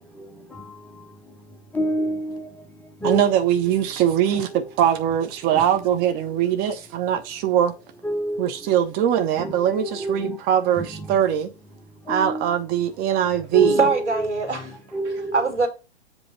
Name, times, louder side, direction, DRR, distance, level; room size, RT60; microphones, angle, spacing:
voice 1, 1.7-2.5 3.0-3.3 5.5-5.6 8.0-8.4 9.4-10.4 10.8-11.1 12.1-12.5 13.5-14.2 14.9-15.5, right 1 dB, 5° left, 0.7 m, -27 dB
voice 2, 3.0-7.7 8.4-11.5 12.1-13.8, right 10 dB, 25° right, 0.9 m, -21 dB
voice 3, 13.8-14.7 15.3-15.7, right 4 dB, 90° right, 2.5 m, -22 dB
7.7 x 3.1 x 5.9 m
figure-of-eight pair, 115°, 34 cm